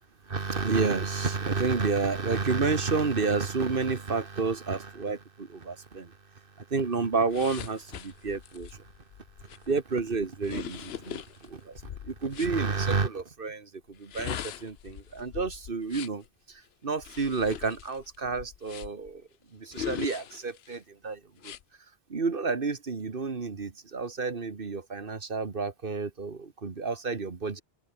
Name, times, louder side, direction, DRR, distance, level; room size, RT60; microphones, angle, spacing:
voice 1, 0.3-6.2 6.6-8.9 9.7-19.2 19.5-21.5 22.1-27.6, right 4 dB, 60° right, 1.8 m, -30 dB
sound 1, 7.3-12.6 13.9-16.3 17.0-19.1 19.7-20.8 21.4-21.6, left 10 dB, 75° left, 0.9 m, -41 dB
open air
omnidirectional pair, 1.1 m